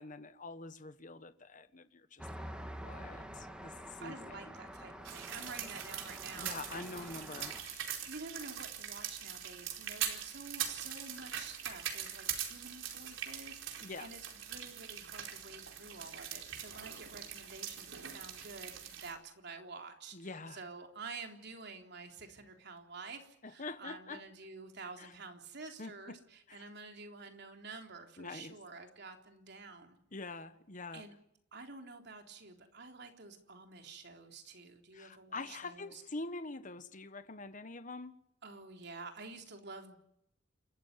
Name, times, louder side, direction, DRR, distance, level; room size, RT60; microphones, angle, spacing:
voice 1, 0.0-4.3 6.4-8.0 13.8-14.1 20.1-20.6 23.4-24.2 25.0-25.1 25.8-26.2 26.5-26.6 28.2-28.5 30.1-31.0 34.9-38.1, left 3 dB, 40° left, 1.3 m, -45 dB
Traffic noise roadway noise, 2.2-7.6, equal, 5° right, 2.5 m, -47 dB
voice 2, 2.9-3.3 4.0-7.1 8.1-30.0 30.9-31.1 31.5-36.0 38.4-40.0, right 4 dB, 60° right, 3.7 m, -49 dB
sound 1, 5.0-19.1, right 9 dB, 90° right, 4.4 m, -42 dB
29.0 x 13.5 x 9.7 m
head